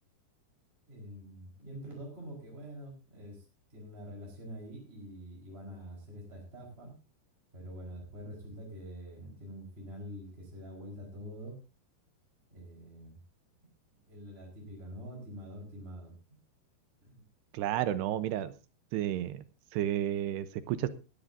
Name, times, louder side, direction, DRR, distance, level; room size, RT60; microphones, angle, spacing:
voice 1, 0.9-3.4 3.7-6.9 7.5-11.6 12.5-13.2 13.9-16.1 17.0-17.2, equal, 15° right, -1 dB, 4.3 m, -46 dB
voice 2, 17.5-18.5 18.9-19.4 19.7-20.9, right 12 dB, 80° right, 12 dB, 2.8 m, -31 dB
20.0 x 13.5 x 2.7 m, 0.29 s
omnidirectional pair, 5.0 m